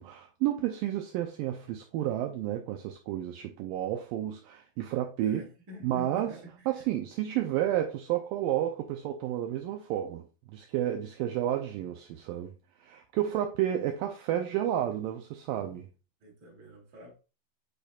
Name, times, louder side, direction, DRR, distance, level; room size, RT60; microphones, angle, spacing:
voice 1, 0.0-5.5 5.8-15.9, right 12 dB, 85° right, 2.0 m, -31 dB
voice 2, 5.2-6.4 16.2-17.1, right 2 dB, 30° right, 1.9 m, -47 dB
8.7 x 5.1 x 2.3 m
omnidirectional pair, 4.6 m